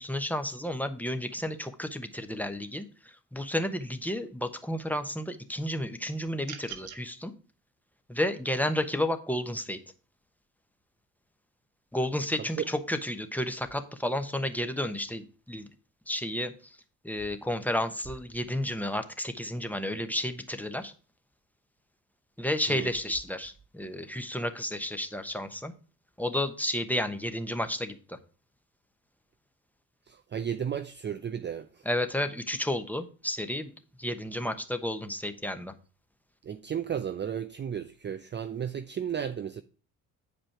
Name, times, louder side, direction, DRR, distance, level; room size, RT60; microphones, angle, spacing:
voice 1, 0.0-7.3 8.1-9.8 11.9-15.7 16.1-16.8 17.0-20.9 22.4-25.7 26.2-28.2 31.8-33.7 34.0-35.7, left 1 dB, 5° left, 1.1 m, -32 dB
sound 1, 6.4-7.0, right 9 dB, 55° right, 1.2 m, -42 dB
voice 2, 30.1-31.8 36.4-39.6, right 8 dB, 25° right, 0.5 m, -34 dB
8.6 x 5.2 x 4.7 m
hypercardioid pair, 50°, 43 cm